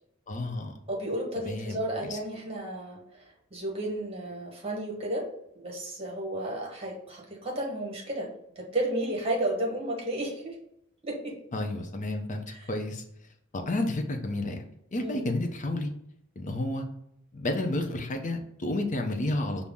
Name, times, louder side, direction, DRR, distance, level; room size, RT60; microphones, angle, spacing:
voice 1, 0.3-0.8 1.4-1.8 2.1-2.2 11.5-13.0 13.5-14.6 14.9-15.9 16.4-16.8 17.3-19.7, left 1 dB, 35° left, 4 dB, 0.6 m, -31 dB
voice 2, 0.9-5.3 5.5-10.6 11.0-11.4 12.5-12.7 15.0-15.2, right 1 dB, 25° right, -1 dB, 1.0 m, -33 dB
5.5 x 2.0 x 3.5 m, 0.75 s
head